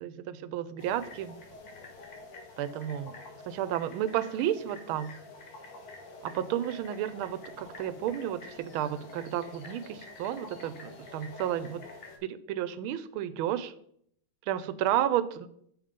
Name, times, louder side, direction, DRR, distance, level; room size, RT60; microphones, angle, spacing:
voice 1, 0.0-1.3 2.6-3.2 3.5-5.2 6.2-11.8 12.2-13.7 14.5-15.5, right 11 dB, 90° right, 15 dB, 1.4 m, -32 dB
sound 1, 0.8-12.2, left 3 dB, 65° left, 1.9 m, -48 dB
7.2 x 5.3 x 5.1 m, 0.69 s
omnidirectional pair, 2.2 m